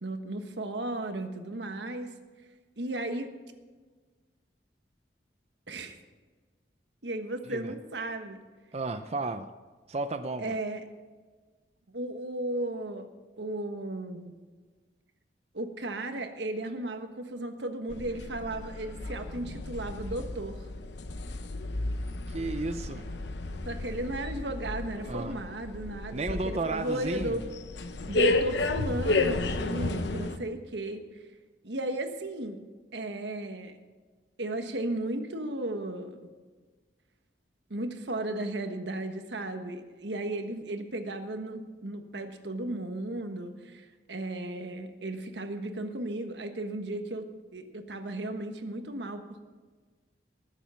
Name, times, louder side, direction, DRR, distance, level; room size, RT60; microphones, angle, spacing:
voice 1, 0.0-2.1 2.8-3.3 5.7-6.0 7.0-8.4 10.4-10.8 11.9-13.1 13.4-14.3 15.5-20.7 23.6-27.4 28.1-31.0 31.6-32.6 32.9-33.8 34.4-36.3 37.7-47.3 47.5-49.4, right 1 dB, 85° right, 7 dB, 1.3 m, -35 dB
voice 2, 8.7-9.5 9.9-10.6 22.3-23.1 25.1-25.4 26.1-27.4, right 3 dB, 35° right, 8 dB, 0.5 m, -33 dB
sound 1, 17.9-30.4, left 2 dB, 85° left, 0.9 m, -33 dB
20.0 x 7.4 x 5.7 m, 1.4 s
head